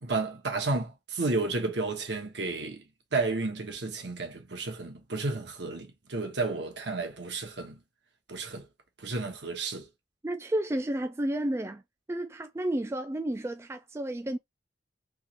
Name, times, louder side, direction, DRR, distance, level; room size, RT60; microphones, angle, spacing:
voice 1, 0.0-2.8 3.1-7.8 8.3-8.7 9.0-9.9, right 3 dB, 70° right, 1.2 m, -32 dB
voice 2, 10.2-11.8 12.1-14.4, right 1 dB, 15° right, 0.3 m, -31 dB
3.6 x 3.0 x 2.8 m
head